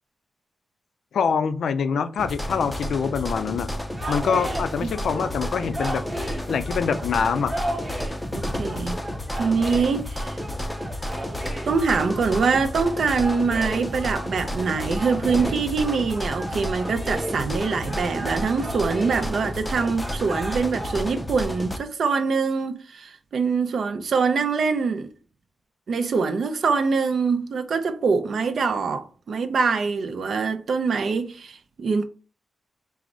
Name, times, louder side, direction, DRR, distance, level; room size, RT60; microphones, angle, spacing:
voice 1, 1.1-3.7 4.1-6.0 6.5-7.5, left 6 dB, 80° left, 0.3 m, -25 dB
sound 1, 2.2-21.8, equal, 10° left, 0.4 m, -31 dB
sound 2, 3.9-20.9, right 1 dB, 15° right, 0.9 m, -35 dB
voice 2, 8.3-9.0 9.4-10.4 11.7-25.1 25.9-32.0, right 5 dB, 60° right, 0.5 m, -24 dB
4.6 x 2.0 x 3.8 m
wide cardioid pair, 135°, 0 cm